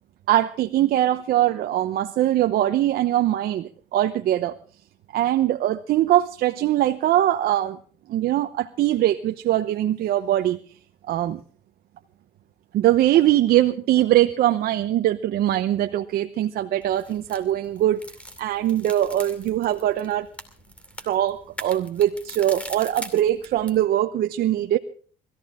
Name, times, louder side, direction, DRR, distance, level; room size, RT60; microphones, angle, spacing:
voice 1, 0.3-4.5 5.1-7.8 8.1-10.6 11.1-11.4 12.7-18.0 18.4-20.3 21.0-24.8, right 13 dB, 60° right, 7 dB, 0.9 m, -22 dB
sound 1, 16.8-23.8, equal, 5° left, 2.5 m, -41 dB
21.5 x 14.5 x 3.7 m, 0.43 s
cardioid pair, 105°, 17 cm